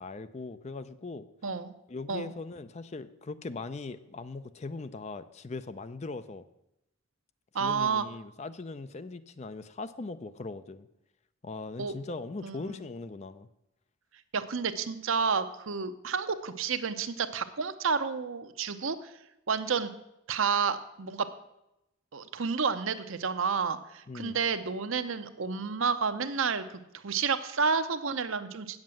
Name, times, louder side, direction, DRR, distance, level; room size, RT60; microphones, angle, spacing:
voice 1, 0.0-1.3 1.9-6.4 7.6-10.9 11.4-13.5 24.1-24.4, left 3 dB, 30° left, 13 dB, 0.4 m, -40 dB
voice 2, 1.4-1.7 2.1-2.3 7.5-8.1 11.8-11.9 12.4-12.8 14.3-19.1 19.5-19.9 20.3-21.3 22.1-28.8, right 5 dB, 70° right, 10 dB, 0.7 m, -30 dB
8.7 x 7.4 x 7.6 m, 0.88 s
head